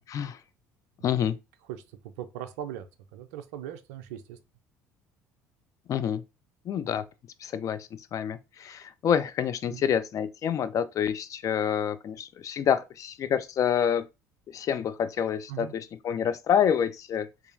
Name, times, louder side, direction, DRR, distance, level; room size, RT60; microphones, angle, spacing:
voice 1, 0.1-0.4 1.0-1.4 5.9-6.2 6.7-7.0 7.4-14.0 14.5-17.3, left 8 dB, 40° left, 0.3 m, -27 dB
voice 2, 2.2-2.9 3.1-4.4 9.7-9.8 15.5-15.7, right 11 dB, 75° right, 0.3 m, -39 dB
2.7 x 2.4 x 2.5 m
hypercardioid pair, 60°, 8 cm